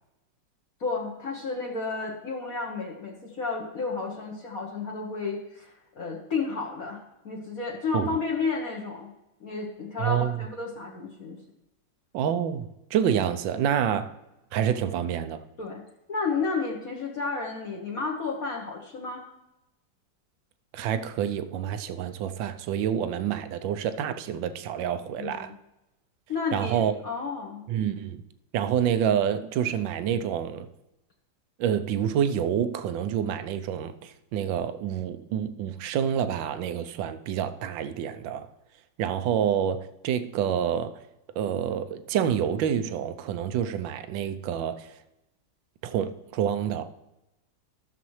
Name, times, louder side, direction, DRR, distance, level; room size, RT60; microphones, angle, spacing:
voice 1, 0.8-9.1 9.4-11.4 15.6-15.8 16.1-19.2 25.2-25.6 26.3-27.6, left 4 dB, 50° left, 1.5 m, -32 dB
voice 2, 10.0-10.4 12.1-14.1 14.5-15.4 20.7-25.5 26.5-26.9 27.7-28.2 28.5-30.7 31.6-38.5 39.0-41.0 41.3-45.0 45.8-46.9, right 9 dB, 80° right, 1.4 m, -28 dB
14.5 x 6.8 x 3.1 m
omnidirectional pair, 2.0 m